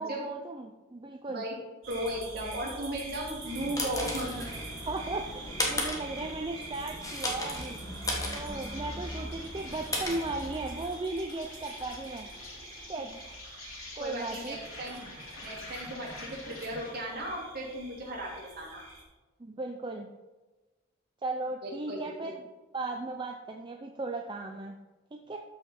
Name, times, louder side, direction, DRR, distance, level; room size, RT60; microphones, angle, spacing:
voice 1, 0.0-1.4 4.9-7.8 8.3-12.3 12.8-13.1 13.9-14.6 19.4-20.1 21.2-22.4 22.7-24.8 25.1-25.4, right 2 dB, 25° right, 3 dB, 0.5 m, -36 dB
sound 1, 1.8-19.0, right 3 dB, 65° right, 3.2 m, -45 dB
voice 2, 1.9-4.5 14.0-15.0 15.4-18.8 21.6-22.3, right 1 dB, 50° right, -3 dB, 2.9 m, -36 dB
sound 2, 3.3-11.0, left 1 dB, 15° left, 1.4 m, -36 dB
Insect, 7.7-17.1, left 2 dB, 85° left, 2.6 m, -48 dB
12.5 x 5.5 x 4.3 m, 1.2 s
head